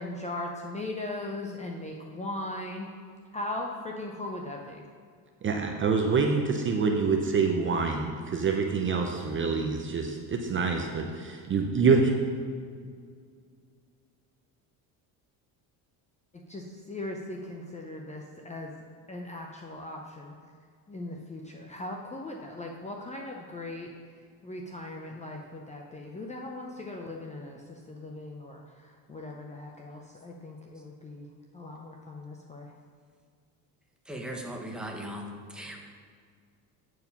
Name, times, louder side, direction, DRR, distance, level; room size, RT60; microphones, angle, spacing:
voice 1, 0.0-2.9 3.3-4.8 16.3-18.7 19.1-20.3 20.9-23.9 24.4-31.3 31.5-32.7, left 2 dB, 15° left, 0 dB, 0.5 m, -39 dB
voice 2, 5.4-12.1, right 4 dB, 30° right, 3 dB, 0.6 m, -26 dB
voice 3, 34.1-35.2 35.5-35.8, right 1 dB, ahead, 0 dB, 0.9 m, -37 dB
9.0 x 4.7 x 5.3 m, 2.1 s
cardioid pair, 130°, 42 cm